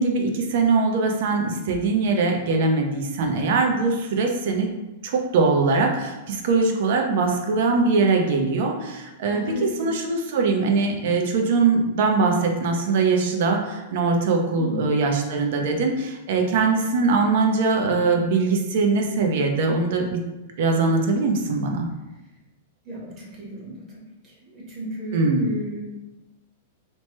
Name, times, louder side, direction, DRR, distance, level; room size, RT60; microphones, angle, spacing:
voice 1, 0.0-4.7 5.0-20.2 20.6-21.9 25.1-25.5, right 4 dB, 65° right, 3 dB, 0.5 m, -22 dB
voice 2, 9.3-9.9 14.6-14.9 22.8-25.8, right 1 dB, 35° right, -4 dB, 1.1 m, -34 dB
2.9 x 2.1 x 2.9 m, 1.0 s
hypercardioid pair, 130°, 0 cm